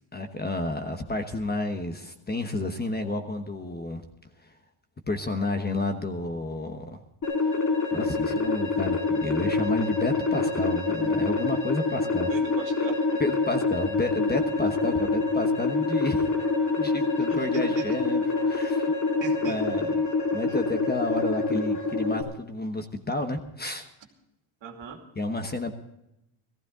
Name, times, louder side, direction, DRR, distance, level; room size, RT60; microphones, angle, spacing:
voice 1, 0.1-4.0 4.4-4.5 5.1-7.0 7.9-12.3 13.2-16.3 16.8-18.8 19.4-19.9 20.3-23.8 25.2-25.7, left 2 dB, 20° left, 6 dB, 1.1 m, -31 dB
sound 1, 7.2-22.2, left 3 dB, 35° left, 2.6 m, -26 dB
voice 2, 12.0-13.2 17.3-17.9 19.2-19.8 24.6-25.0, right 6 dB, 60° right, 3 dB, 2.7 m, -38 dB
18.5 x 15.0 x 3.7 m, 0.84 s
cardioid pair, 165°, 49 cm